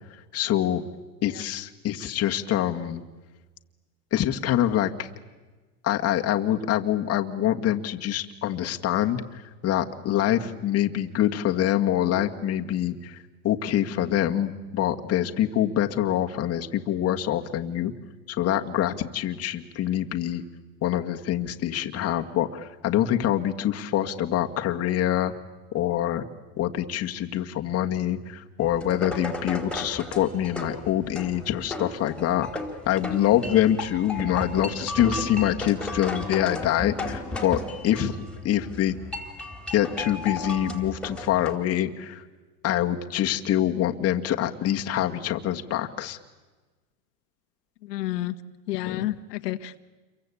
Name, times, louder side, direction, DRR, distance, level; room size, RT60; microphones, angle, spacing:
voice 1, 0.3-0.8 1.2-3.0 4.1-5.1 5.8-13.2 13.4-17.9 18.3-20.4 20.8-25.3 25.7-26.2 26.6-32.5 32.9-37.6 37.8-39.0 39.7-42.2 42.6-46.2 48.9-49.1, left 11 dB, 30° left, 4 dB, 1.8 m, -25 dB
sound 1, 28.6-41.5, left 2 dB, ahead, 3.4 m, -35 dB
voice 2, 47.9-48.3 48.7-49.8, left 15 dB, 80° left, 8 dB, 1.5 m, -30 dB
29.5 x 23.5 x 8.5 m, 1.3 s
supercardioid pair, 130°, 48 cm